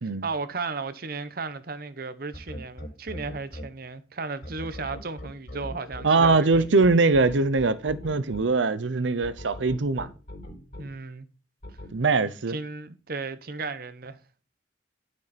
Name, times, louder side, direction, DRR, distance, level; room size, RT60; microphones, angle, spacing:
voice 1, 0.0-6.9 10.8-11.3 12.5-14.2, right 4 dB, 50° right, 0.9 m, -35 dB
sound 1, 2.3-3.6 4.4-8.4 9.2-10.8 11.6-11.9, left 1 dB, 50° left, 3.9 m, -39 dB
voice 2, 6.0-10.1 11.9-12.6, right 3 dB, 80° right, 0.7 m, -22 dB
11.5 x 6.5 x 4.2 m
head